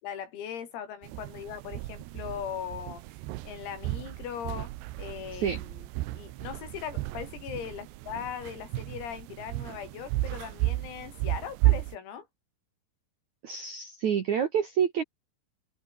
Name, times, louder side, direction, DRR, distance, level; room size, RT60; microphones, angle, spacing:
voice 1, 0.0-3.0 3.4-4.7 5.0-12.3, left 8 dB, 90° left, 6.7 m, -39 dB
sound 1, 1.0-12.0, right 18 dB, 85° right, 2.5 m, -33 dB
voice 2, 13.4-15.0, right 8 dB, 70° right, 1.8 m, -28 dB
omnidirectional pair, 5.9 m